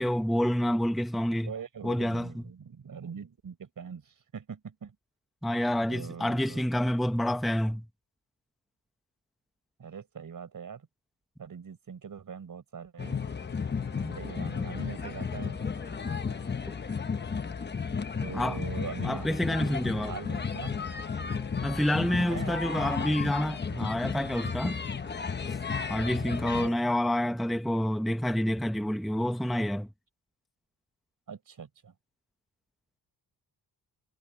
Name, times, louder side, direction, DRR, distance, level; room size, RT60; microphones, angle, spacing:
voice 1, 0.0-1.5 1.8-2.4 5.4-7.9 18.3-18.6 19.0-20.1 21.6-24.8 25.9-29.9, equal, ahead, 0.8 m, -28 dB
voice 2, 1.4-5.0 5.9-6.6 9.8-10.9 11.4-13.3 14.0-15.6 18.2-19.3 20.0-20.9 22.1-22.6 23.0-23.1 26.6-26.8 31.3-31.9, right 7 dB, 50° right, 4.4 m, -42 dB
sound 1, 13.0-26.7, left 5 dB, 25° left, 0.9 m, -33 dB
sound 2, 13.1-26.8, left 9 dB, 65° left, 5.6 m, -49 dB
cardioid pair, 120°, 43 cm